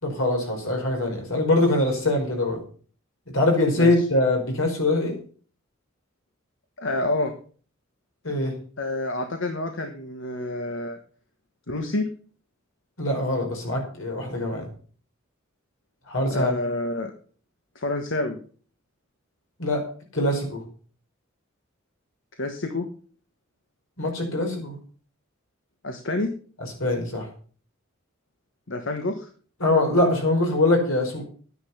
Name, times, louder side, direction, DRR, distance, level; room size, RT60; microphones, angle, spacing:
voice 1, 0.0-2.6 3.3-5.1 8.2-8.6 13.0-14.7 16.1-16.6 19.6-19.8 20.1-20.6 24.0-24.7 26.8-27.3 29.6-31.2, left 2 dB, 80° left, 2 dB, 5.0 m, -23 dB
voice 2, 6.8-7.3 8.8-11.0 11.7-12.0 16.3-17.1 17.7-18.4 22.4-22.9 25.8-26.3 28.7-29.3, left 2 dB, 65° left, 5 dB, 1.3 m, -28 dB
11.5 x 9.7 x 5.8 m, 0.43 s
head